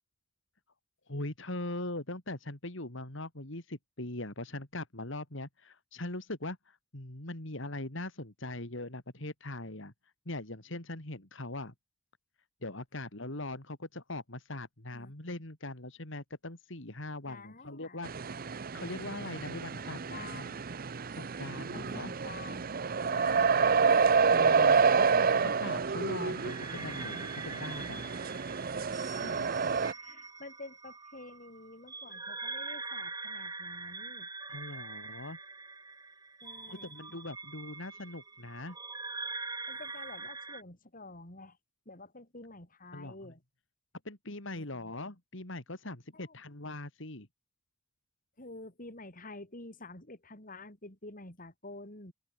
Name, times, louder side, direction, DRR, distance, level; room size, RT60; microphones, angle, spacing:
voice 1, 1.1-11.7 12.6-18.1 18.7-20.5 21.1-22.1 24.3-28.1 34.5-35.4 36.7-38.8 42.9-43.2 44.1-47.3, left 2 dB, 65° left, 3.5 m, -41 dB
voice 2, 17.3-18.1 19.7-20.6 21.7-22.7 23.1-23.7 29.1-29.6 29.9-34.3 36.4-36.9 39.7-41.6 41.9-43.4 44.5-44.8 46.1-46.4 48.4-52.1, left 2 dB, 40° left, 6.0 m, -49 dB
sound 1, 18.0-29.9, right 5 dB, 45° right, 0.7 m, -29 dB
sound 2, 26.2-40.6, right 3 dB, 20° right, 2.9 m, -43 dB
head